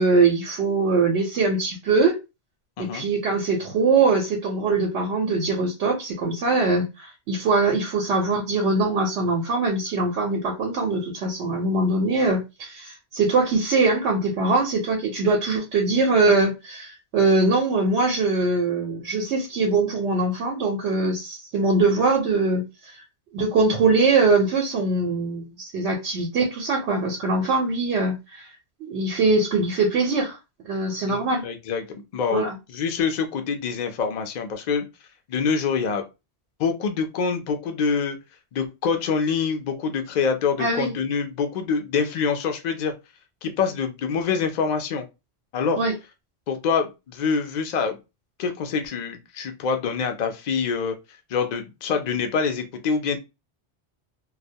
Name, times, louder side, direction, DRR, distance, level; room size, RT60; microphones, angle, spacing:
voice 1, 0.0-2.2 2.8-22.7 23.3-28.5 28.8-30.4 30.6-31.4 32.3-32.6 40.6-40.9 45.8-45.9, right 3 dB, 85° right, 1.0 m, -22 dB
voice 2, 31.1-34.9 35.3-36.0 36.6-38.2 38.5-42.9 43.4-45.1 45.5-45.8 46.5-48.0 48.4-51.0 51.3-53.2, left 5 dB, 55° left, 0.5 m, -25 dB
2.3 x 2.1 x 2.6 m
omnidirectional pair, 1.1 m